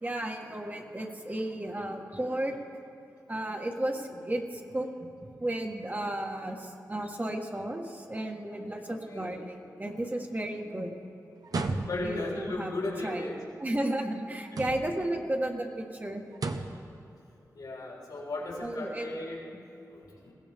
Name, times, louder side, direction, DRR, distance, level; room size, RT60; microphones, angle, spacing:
voice 1, 0.0-2.6 3.3-4.9 5.2-10.9 12.0-12.7 13.0-13.3 13.6-16.2 18.6-19.1, right 1 dB, 25° right, 2 dB, 1.5 m, -33 dB
voice 2, 8.9-9.3 11.9-13.4 14.5-14.6 17.5-19.4 19.9-20.3, left 2 dB, 90° left, -5 dB, 4.2 m, -36 dB
sound 1, 11.4-12.3 14.5-15.1 16.3-16.9, right 3 dB, 65° right, 1.0 m, -33 dB
21.0 x 16.0 x 3.6 m, 2.8 s
wide cardioid pair, 80°, 7 cm